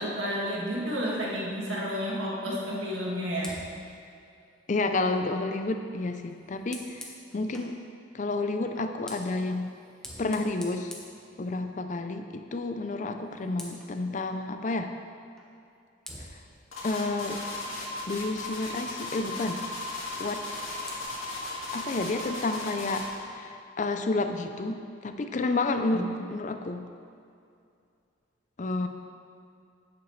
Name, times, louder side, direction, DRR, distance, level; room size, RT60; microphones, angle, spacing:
voice 1, 0.0-3.6 25.9-26.2, equal, 75° right, -5 dB, 2.0 m, -31 dB
Fire, 3.3-7.8 8.7-12.0 12.3-12.6 12.9-14.0 15.4-15.5 16.0-18.4 20.2-21.0, left 1 dB, 5° left, 0.7 m, -49 dB
voice 2, 4.7-7.7 8.1-9.7 10.2-10.9 11.4-14.9 16.8-17.4 18.1-19.6 20.2-20.4 21.7-26.8 28.6-28.9, left 2 dB, 40° left, 7 dB, 0.4 m, -30 dB
sound 1, 16.7-23.1, left 2 dB, 90° left, 2.1 m, -36 dB
10.5 x 8.3 x 3.2 m, 2.4 s
head